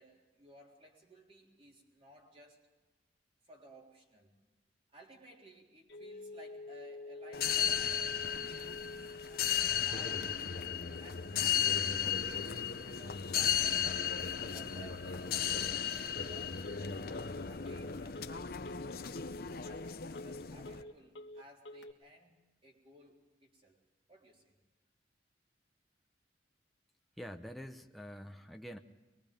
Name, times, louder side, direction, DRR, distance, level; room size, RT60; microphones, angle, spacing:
voice 1, 0.0-2.7 3.4-4.3 4.9-10.4 11.0-14.0 14.5-18.8 19.6-23.8 24.1-24.6, right 1 dB, 30° right, 0 dB, 3.7 m, -58 dB
Telephone, 5.9-21.9, left 2 dB, 90° left, 1.4 m, -50 dB
sound 1, 7.3-20.8, left 8 dB, 55° left, 0.8 m, -35 dB
voice 2, 27.2-28.8, equal, ahead, 4 dB, 0.9 m, -46 dB
24.0 x 22.5 x 5.3 m, 1.2 s
head